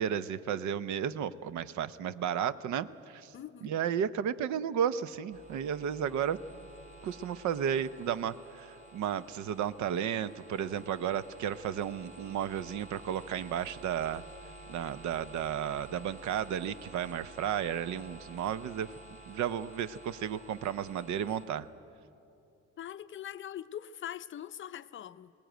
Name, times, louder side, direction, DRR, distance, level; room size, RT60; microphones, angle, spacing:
voice 1, 0.0-3.3 3.6-6.4 7.0-14.2 14.7-18.9 19.3-21.7, right 9 dB, 70° right, 16 dB, 0.7 m, -33 dB
voice 2, 3.3-3.7 22.8-25.3, left 10 dB, 40° left, 12 dB, 0.5 m, -42 dB
sound 1, 5.3-21.5, right 1 dB, 25° right, 3.6 m, -52 dB
20.0 x 18.5 x 9.1 m, 2.8 s
cardioid pair, 125°, 30 cm